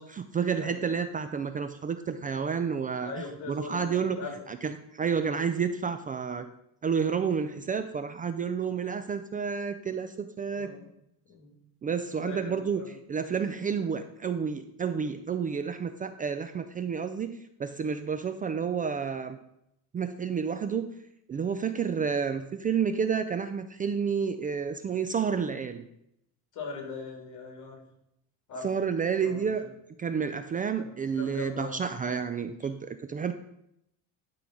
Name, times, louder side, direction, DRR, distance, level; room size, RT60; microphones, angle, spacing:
voice 1, 0.0-3.1 3.5-4.2 4.5-6.5 6.8-10.7 11.8-19.4 19.9-20.9 21.3-25.8 28.6-29.6 30.0-33.3, right 6 dB, 25° right, 9 dB, 0.4 m, -30 dB
voice 2, 3.0-4.5 10.5-10.9 11.3-11.6 12.1-12.9 26.5-27.8 28.5-28.7 29.2-29.7 30.8-30.9 31.1-31.8, left 4 dB, 55° left, 2 dB, 3.1 m, -40 dB
11.5 x 3.9 x 6.1 m, 0.79 s
cardioid pair, 140°, 35 cm